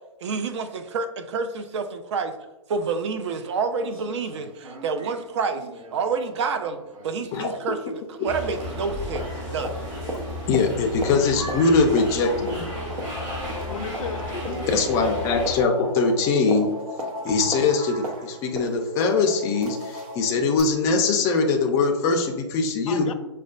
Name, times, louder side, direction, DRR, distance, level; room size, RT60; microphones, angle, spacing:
voice 1, 0.2-2.3 2.7-5.6 5.9-6.8 7.0-9.7, right 5 dB, 55° right, 8 dB, 0.5 m, -28 dB
sound 1, 2.9-3.0 3.4-3.5 3.8-8.3 8.6-20.2 20.6-20.7, right 1 dB, 80° right, 0.8 m, -38 dB
sound 2, 8.2-15.6, left 1 dB, 20° right, 1.0 m, -33 dB
voice 2, 10.5-12.6 14.7-16.7 17.2-23.1, left 4 dB, 20° left, 2 dB, 0.4 m, -22 dB
voice 3, 11.0-11.3 11.6-12.6 13.7-14.7 22.9-23.1, left 6 dB, 75° left, 8 dB, 0.5 m, -35 dB
sound 3, 12.5-20.6, left 1 dB, 40° right, 1.3 m, -36 dB
6.2 x 2.2 x 2.4 m, 1.0 s
hypercardioid pair, 145°, 18 cm